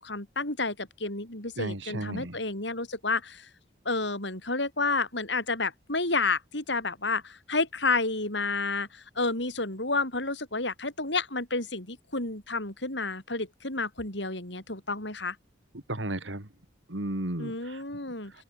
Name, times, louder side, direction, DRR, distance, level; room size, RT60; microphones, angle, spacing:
voice 1, 0.0-3.5 3.9-15.4 17.4-18.3, left 3 dB, 65° left, 7.3 m, -30 dB
voice 2, 1.6-2.4 15.9-16.5 16.9-17.8, right 1 dB, 75° right, 2.9 m, -34 dB
open air
head